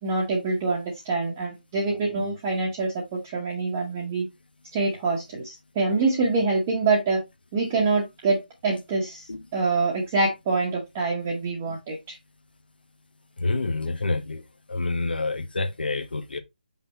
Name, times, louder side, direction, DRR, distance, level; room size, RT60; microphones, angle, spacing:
voice 1, 0.0-4.3 4.7-7.2 7.5-12.2, right 3 dB, 15° right, 1.0 m, -25 dB
voice 2, 13.4-14.4 14.7-16.4, left 3 dB, 85° left, 1.2 m, -27 dB
5.8 x 5.5 x 3.0 m
hypercardioid pair, 175°, 5 cm